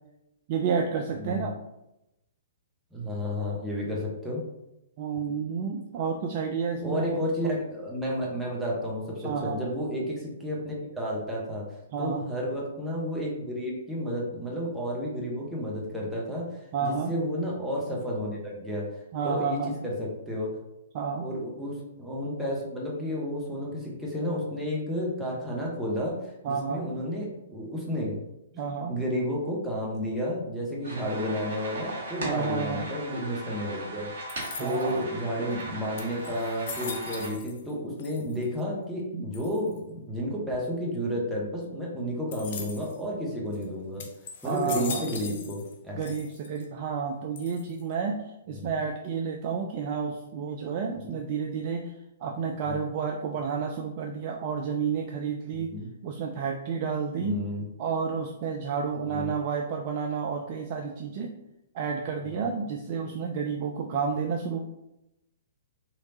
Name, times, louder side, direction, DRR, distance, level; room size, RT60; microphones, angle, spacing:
voice 1, 0.5-1.5 5.0-7.5 9.2-9.6 11.9-12.3 16.7-17.1 19.1-19.8 20.9-21.3 26.4-27.0 28.6-28.9 32.2-32.9 34.6-35.1 39.1-39.3 44.4-45.1 46.0-48.2 48.5-51.9 52.2-55.7 56.0-57.4 57.8-61.3 61.7-64.6, right 6 dB, 40° right, 2 dB, 0.3 m, -30 dB
voice 2, 1.2-1.5 2.9-4.4 6.8-11.7 12.0-18.9 19.2-20.5 21.2-26.2 26.5-28.2 28.5-34.1 34.6-44.1 44.4-46.0 48.5-48.7 51.1-51.2 52.6-52.8 55.5-55.9 57.2-57.6 59.1-59.3 62.2-62.4, equal, 5° right, -5 dB, 0.9 m, -32 dB
sound 1, 30.8-37.3, right 1 dB, 55° right, 1.4 m, -38 dB
sound 2, 34.3-35.0 35.6-35.7 36.0-37.7 38.0-38.6 39.3-39.8 42.3-43.0 43.5-43.6 44.0-45.8 46.0-46.6 47.4-47.9, left 5 dB, 50° left, 0.6 m, -40 dB
3.2 x 2.9 x 2.7 m, 0.88 s
figure-of-eight pair, 115°, 0 cm